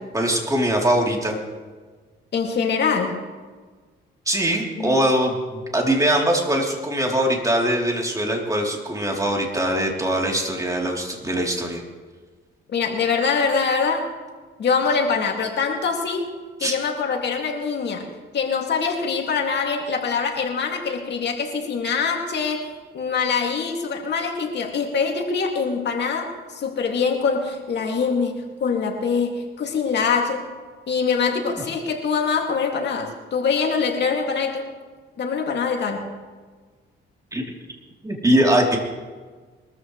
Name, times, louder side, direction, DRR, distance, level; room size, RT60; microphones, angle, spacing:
voice 1, 0.1-1.4 4.3-11.8 16.6-16.7 37.3-37.4 38.0-38.8, right 1 dB, 15° right, 0 dB, 3.3 m, -22 dB
voice 2, 2.3-3.2 4.8-4.9 12.7-14.1 14.6-16.3 16.6-18.1 18.3-22.7 22.9-30.5 30.9-34.7 35.2-36.1, left 5 dB, 60° left, 2 dB, 2.4 m, -24 dB
22.5 x 14.0 x 3.2 m, 1.4 s
cardioid pair, 90°, 20 cm